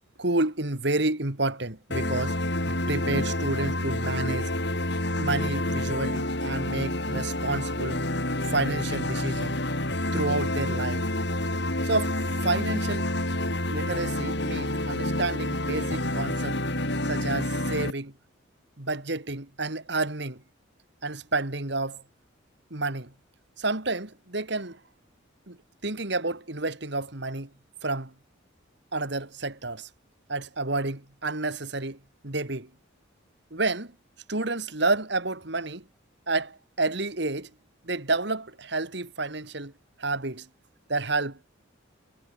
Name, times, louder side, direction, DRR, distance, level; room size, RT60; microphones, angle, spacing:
voice 1, 0.2-2.4 2.7-4.5 5.2-8.0 8.5-9.5 10.1-11.1 11.8-12.2 12.4-13.1 13.7-16.6 17.1-18.1 18.8-20.4 21.0-22.0 22.7-23.1 23.6-24.8 25.5-25.6 25.8-27.5 27.8-28.1 28.9-29.9 30.3-32.0 32.2-32.7 33.5-33.9 34.3-35.8 36.3-37.5 37.8-39.7 40.0-40.5 40.9-41.5, right 2 dB, 60° right, 2.3 m, -30 dB
sound 1, 1.9-17.9, left 1 dB, 55° left, 7.3 m, -28 dB
head